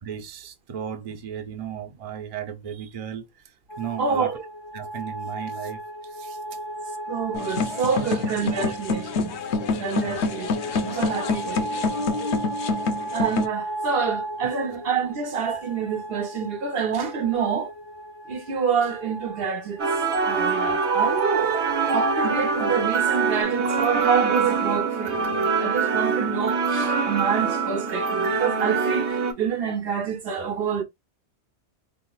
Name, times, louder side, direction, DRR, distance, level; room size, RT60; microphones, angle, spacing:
voice 1, 0.0-3.3 3.8-4.3 4.7-6.4 8.0-8.1 8.6-8.7 10.0-10.4 14.4-14.5, right 8 dB, 45° right, 0.5 m, -35 dB
sound 1, 3.7-23.4, right 1 dB, 45° left, 0.3 m, -36 dB
voice 2, 4.0-4.4 7.1-9.4 9.8-11.7 13.1-17.7 18.3-19.8 20.3-21.6 21.9-30.8, right 6 dB, 65° right, 1.0 m, -27 dB
sound 2, 7.3-13.5, left 4 dB, 80° left, 0.9 m, -27 dB
sound 3, 19.8-29.3, right 5 dB, 90° right, 1.1 m, -24 dB
4.1 x 3.0 x 2.2 m
omnidirectional pair, 1.1 m